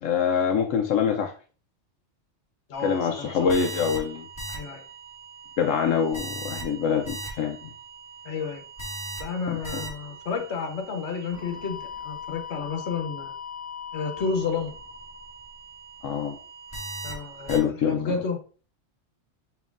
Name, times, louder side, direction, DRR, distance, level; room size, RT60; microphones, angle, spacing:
voice 1, 0.0-1.3 2.8-4.3 5.6-7.7 9.5-9.8 16.0-16.4 17.5-18.1, left 7 dB, 85° left, 1.0 m, -25 dB
voice 2, 2.7-3.5 4.5-4.8 8.2-8.6 9.2-13.3 13.9-14.7 17.0-18.4, left 5 dB, 65° left, 1.2 m, -31 dB
sound 1, 2.7-17.6, equal, 10° left, 2.1 m, -39 dB
7.1 x 3.1 x 2.5 m
omnidirectional pair, 1.3 m